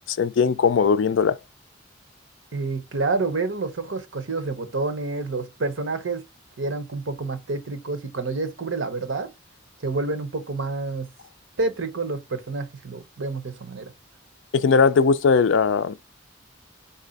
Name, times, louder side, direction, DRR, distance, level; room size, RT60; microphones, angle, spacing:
voice 1, 0.0-1.4 14.5-16.0, left 5 dB, 70° left, 0.4 m, -19 dB
voice 2, 2.5-6.2 6.6-9.3 9.8-11.1 11.6-13.9, right 3 dB, 75° right, 0.8 m, -28 dB
4.2 x 2.7 x 3.9 m
head